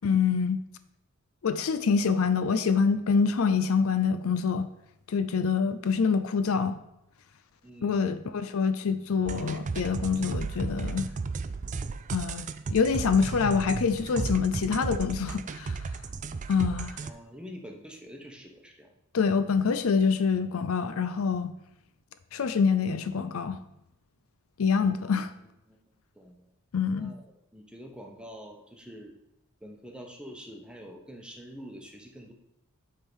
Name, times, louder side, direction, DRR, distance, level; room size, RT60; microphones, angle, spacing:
voice 1, 0.0-0.6 1.4-4.7 5.1-6.8 7.8-11.1 12.1-15.8 16.5-17.0 19.1-21.5 22.3-23.6 24.6-25.3 26.7-27.1, left 5 dB, 70° left, 11 dB, 0.5 m, -26 dB
voice 2, 7.6-8.2 17.0-18.9 25.7-25.8 26.1-26.5 26.9-27.2 27.5-29.1 29.6-32.3, equal, 5° right, 2 dB, 1.0 m, -46 dB
sound 1, 9.2-17.1, right 4 dB, 35° right, 0.4 m, -34 dB
8.4 x 3.7 x 6.2 m, 0.85 s
head